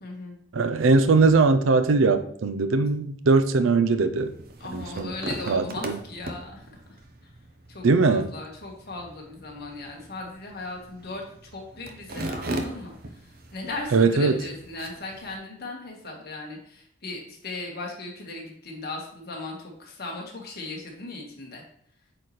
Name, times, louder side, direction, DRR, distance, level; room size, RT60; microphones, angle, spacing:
voice 1, 0.0-0.4 4.6-7.3 7.7-21.6, left 2 dB, 55° left, 0 dB, 1.6 m, -38 dB
voice 2, 0.5-4.3 4.7-5.1 5.5-6.0 7.8-8.3 13.9-14.3, right 3 dB, 85° right, 10 dB, 0.5 m, -20 dB
sound 1, 4.2-15.4, right 1 dB, 50° right, 0.8 m, -39 dB
8.3 x 4.1 x 3.2 m, 0.65 s
head